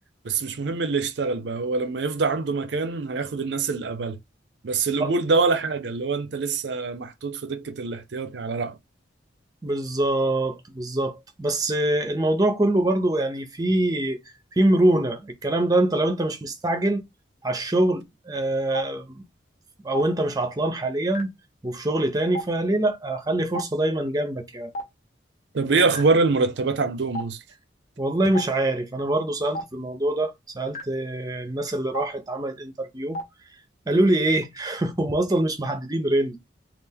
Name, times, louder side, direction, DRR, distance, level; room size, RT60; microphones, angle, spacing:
voice 1, 0.2-4.2 4.6-8.8 25.5-27.4, right 4 dB, 70° right, 0.5 m, -25 dB
voice 2, 9.6-14.2 14.6-17.0 17.4-19.2 19.8-21.3 21.6-24.7 28.0-33.2 33.9-36.4, right 1 dB, 20° right, 0.6 m, -24 dB
Stream, 18.7-18.8 19.9-20.0 21.1-21.2 22.3-22.4 23.5-23.6 24.7-24.8 25.9-26.0 27.1-27.2 28.3-28.4 29.5-29.6 30.7-30.8 31.9-32.0 33.1-33.2, left 1 dB, 40° left, 0.9 m, -29 dB
3.3 x 2.4 x 3.4 m
head